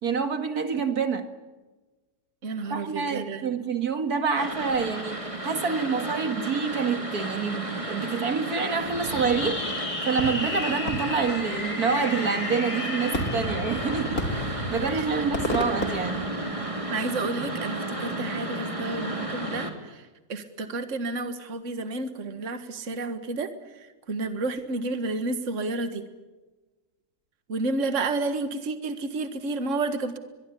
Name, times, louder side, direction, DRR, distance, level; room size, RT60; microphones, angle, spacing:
voice 1, 0.0-1.3 2.7-9.6 10.0-16.4, right 5 dB, 70° right, 2.3 m, -27 dB
voice 2, 2.4-3.5 13.4-13.5 14.9-15.6 16.9-26.0 27.5-30.2, right 3 dB, 50° right, 2.0 m, -31 dB
sound 1, 4.4-19.7, right 1 dB, 20° right, 3.3 m, -33 dB
Fireworks, 8.8-17.0, left 2 dB, 65° left, 4.0 m, -32 dB
23.0 x 22.5 x 9.9 m
omnidirectional pair, 1.7 m